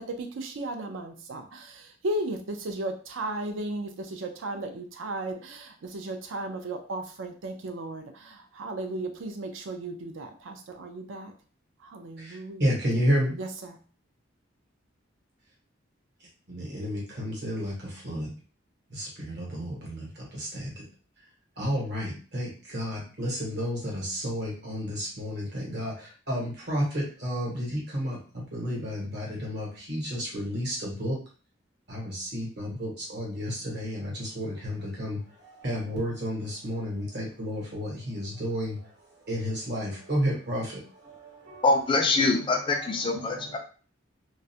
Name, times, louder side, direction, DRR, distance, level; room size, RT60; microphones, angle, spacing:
voice 1, 0.2-1.6 2.0-8.0 8.6-11.3 11.9-12.7 13.4-13.8, right 2 dB, 75° right, 6 dB, 0.4 m, -35 dB
voice 2, 12.6-13.3 16.7-17.7 18.1-18.3 19.4-19.7 21.6-22.1 22.3-22.5 22.7-24.9 25.2-25.4 25.7-25.9 26.3-26.8 27.2-27.7 27.9-28.1 28.5-31.1 31.9-32.0 32.3-32.9 33.1-34.1 34.4-35.2 35.6-38.7 39.3-40.6, equal, 55° right, -3 dB, 1.0 m, -30 dB
voice 3, 41.6-43.6, left 3 dB, 25° left, 4 dB, 0.3 m, -24 dB
2.3 x 2.0 x 2.7 m, 0.39 s
head